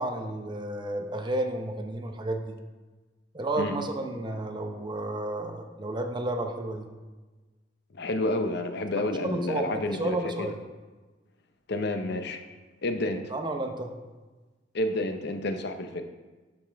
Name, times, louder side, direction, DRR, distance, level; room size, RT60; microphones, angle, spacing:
voice 1, 0.0-2.4 3.3-6.9 9.3-10.6 13.3-13.9, right 1 dB, 25° right, 4 dB, 0.8 m, -31 dB
voice 2, 7.9-10.5 11.7-12.4 12.8-13.3 14.7-16.0, left 2 dB, 60° left, 7 dB, 0.7 m, -30 dB
12.0 x 5.4 x 3.4 m, 1.3 s
head